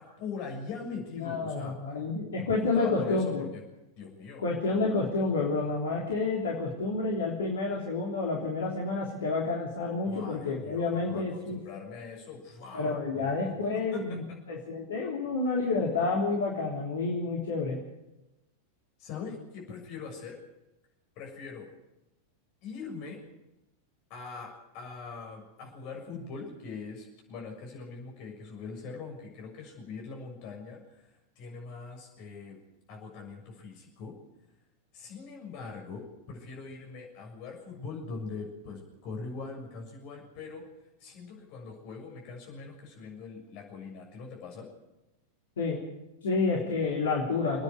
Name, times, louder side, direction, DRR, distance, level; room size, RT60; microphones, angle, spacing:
voice 1, 0.0-1.8 2.4-3.6 4.0-4.4 10.0-14.4 19.0-20.4 21.2-21.7 22.6-23.2 24.1-32.6 32.9-34.1 34.9-40.7 41.0-44.7, left 4 dB, 45° left, 1 dB, 6.8 m, -42 dB
voice 2, 1.1-3.5 4.4-11.6 12.7-17.8 45.6-45.8 46.2-47.6, left 3 dB, 65° left, -3 dB, 3.5 m, -29 dB
27.0 x 10.0 x 9.8 m, 0.97 s
figure-of-eight pair, 90°, 0 cm